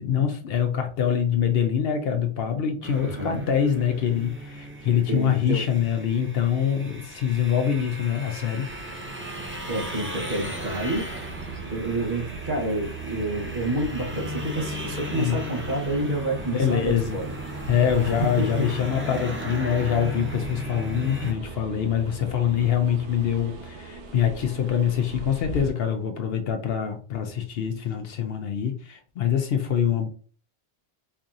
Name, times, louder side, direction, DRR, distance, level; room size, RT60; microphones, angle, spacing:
voice 1, 0.0-8.7 15.1-15.4 16.5-17.2 17.7-30.1, left 8 dB, 65° left, 0.7 m, -24 dB
sound 1, 2.8-21.3, equal, 20° right, 0.4 m, -36 dB
voice 2, 3.0-3.4 5.1-5.7 9.7-11.1 11.7-17.3 18.0-18.1 18.4-18.6, right 2 dB, 50° right, 1.1 m, -29 dB
sound 2, 8.6-25.7, right 4 dB, 85° right, 1.0 m, -39 dB
4.6 x 2.7 x 2.4 m
omnidirectional pair, 1.2 m